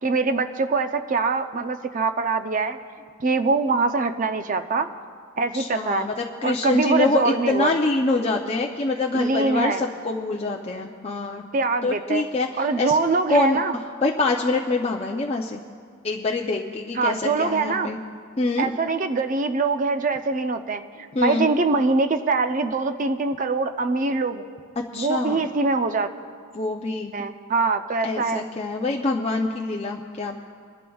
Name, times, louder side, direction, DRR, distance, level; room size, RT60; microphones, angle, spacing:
voice 1, 0.0-2.8 3.2-4.9 5.4-6.1 6.4-7.8 9.1-9.8 11.5-12.2 12.6-13.7 17.0-17.9 18.6-24.4 24.9-26.1 27.1-28.4, right 3 dB, 40° right, 9 dB, 0.5 m, -23 dB
voice 2, 5.5-11.4 11.8-13.0 13.3-13.6 14.0-15.6 16.0-18.0 18.4-18.7 21.1-21.5 24.9-25.5 26.5-27.2 28.0-30.4, left 3 dB, 30° left, 0 dB, 0.5 m, -25 dB
27.5 x 12.0 x 2.3 m, 2.1 s
head